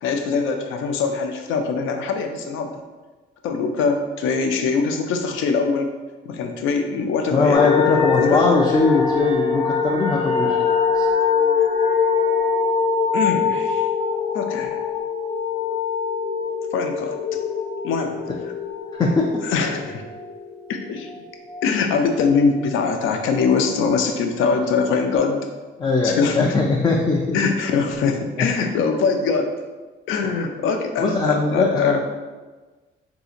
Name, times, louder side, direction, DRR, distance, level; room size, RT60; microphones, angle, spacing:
voice 1, 0.0-2.8 3.4-5.9 6.3-7.7 8.2-8.5 13.1-13.9 14.3-14.7 16.7-17.2 17.8-18.2 19.4-20.0 20.7-21.1 21.6-25.5 26.0-26.5 27.3-29.5 30.1-32.0, left 5 dB, 85° left, 5 dB, 0.4 m, -22 dB
voice 2, 7.3-11.1 19.0-19.4 25.8-27.4 28.4-28.5 31.0-32.0, left 3 dB, 20° left, -1 dB, 0.4 m, -20 dB
sound 1, 7.5-22.4 22.7-24.1 24.6-24.7, left 6 dB, 55° left, 0.9 m, -23 dB
3.8 x 2.7 x 2.5 m, 1.3 s
cardioid pair, 90°, 20 cm